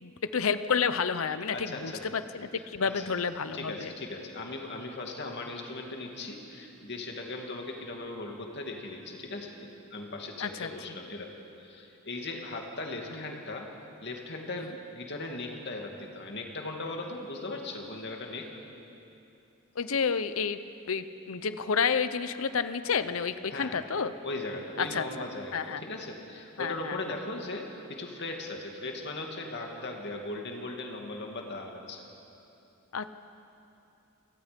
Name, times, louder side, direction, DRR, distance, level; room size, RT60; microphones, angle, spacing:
voice 1, 0.0-3.9 10.4-10.7 13.1-13.2 14.5-14.7 19.8-20.6 20.9-24.1 24.8-25.1 25.5-25.8 26.6-27.0 32.9-33.1, left 6 dB, 75° left, 12 dB, 0.7 m, -30 dB
voice 2, 1.5-2.0 2.8-3.0 3.5-11.3 11.6-13.7 14.0-18.5 23.5-23.7 24.2-32.0, left 2 dB, 55° left, 2 dB, 2.3 m, -38 dB
28.0 x 18.0 x 5.2 m, 2.8 s
head